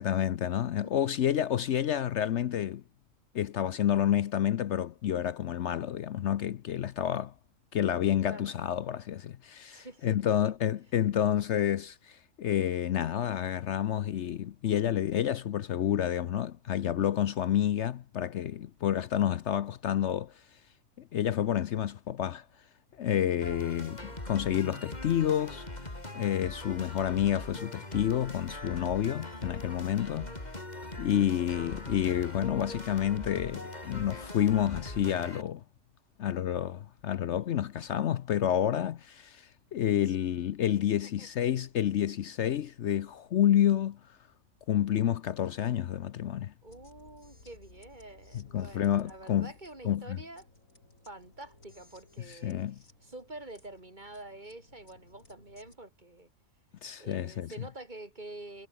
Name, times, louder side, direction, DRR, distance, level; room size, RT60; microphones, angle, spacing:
voice 1, 0.0-2.8 3.3-7.3 7.7-20.3 21.1-22.4 23.0-24.0 24.3-25.6 26.1-30.3 31.0-35.6 36.2-39.4 39.7-44.0 44.7-46.5 48.3-49.5 49.8-50.2 52.3-52.8 56.8-57.5, left 10 dB, 65° left, 0.9 m, -29 dB
voice 2, 9.7-10.4 23.5-23.6 30.0-30.5 31.2-31.4 40.1-40.2 41.2-41.3 46.6-50.5 51.1-52.6 53.0-56.3 57.0-58.7, right 2 dB, 35° right, 3.7 m, -47 dB
sound 1, 23.4-35.4, left 1 dB, 30° left, 4.2 m, -41 dB
sound 2, 46.7-55.8, left 2 dB, 85° left, 6.9 m, -59 dB
omnidirectional pair, 1.4 m